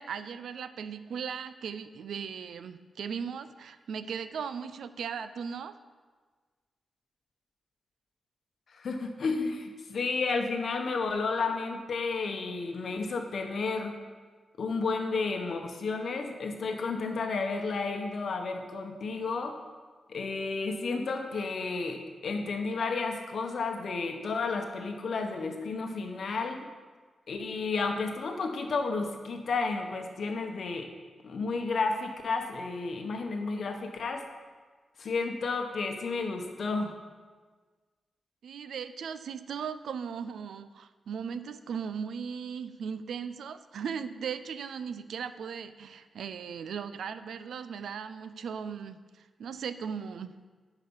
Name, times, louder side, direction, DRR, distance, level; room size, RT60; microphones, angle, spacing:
voice 1, 0.0-5.8 38.4-50.4, right 7 dB, 85° right, 12 dB, 0.4 m, -38 dB
voice 2, 8.7-14.0 14.6-19.5 20.1-26.7 27.3-30.9 31.2-34.2 35.0-36.9, left 4 dB, 55° left, 4 dB, 0.9 m, -32 dB
10.0 x 4.9 x 5.5 m, 1.4 s
wide cardioid pair, 160°, 0 cm